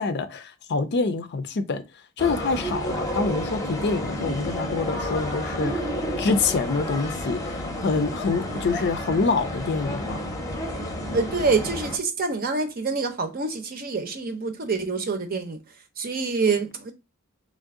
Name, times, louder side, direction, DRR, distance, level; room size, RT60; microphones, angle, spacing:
voice 1, 0.0-1.8 2.2-5.9 6.2-7.4 7.8-10.2, left 4 dB, 55° left, 0.5 m, -26 dB
sound 1, 2.2-12.0, equal, 15° left, 0.7 m, -31 dB
voice 2, 11.1-15.6 16.0-16.9, right 4 dB, 45° right, 0.7 m, -26 dB
3.4 x 2.6 x 3.6 m
head